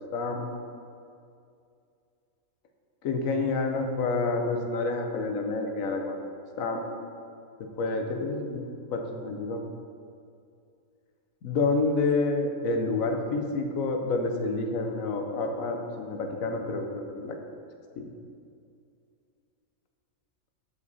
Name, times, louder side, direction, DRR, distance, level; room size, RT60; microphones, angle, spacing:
voice 1, 0.1-0.6 3.0-6.2 6.6-7.0 7.8-9.7 11.4-17.4 18.0-18.1, left 3 dB, 70° left, 4 dB, 1.2 m, -28 dB
7.2 x 7.2 x 4.1 m, 2.4 s
omnidirectional pair, 1.5 m